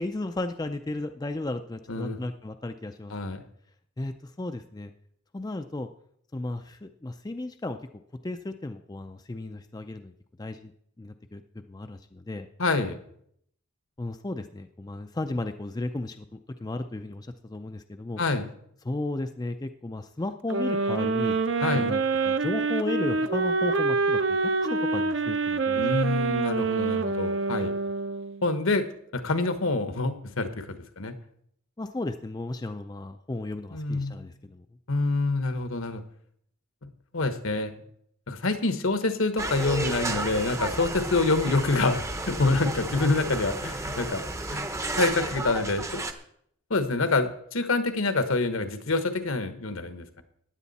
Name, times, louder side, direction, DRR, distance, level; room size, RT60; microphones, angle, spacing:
voice 1, 0.0-3.4 4.0-4.9 5.3-5.9 6.3-7.8 8.2-10.1 10.4-10.7 11.0-12.5 14.0-18.2 18.8-21.4 21.7-25.9 31.8-34.6, left 2 dB, 20° left, 8 dB, 0.4 m, -34 dB
voice 2, 3.1-3.4 12.6-13.0 18.2-18.5 21.6-21.9 25.7-27.7 28.4-28.8 29.1-30.6 31.0-31.1 33.7-34.2 34.9-36.0 36.8-37.7 38.3-44.2 44.5-44.7 45.0-45.8 46.7-50.2, left 3 dB, 70° left, 9 dB, 1.2 m, -26 dB
sound 1, 20.5-28.5, right 4 dB, 55° right, 0.6 m, -26 dB
sound 2, 39.4-46.1, right 2 dB, 15° right, 0.7 m, -32 dB
15.5 x 10.0 x 4.1 m, 0.70 s
head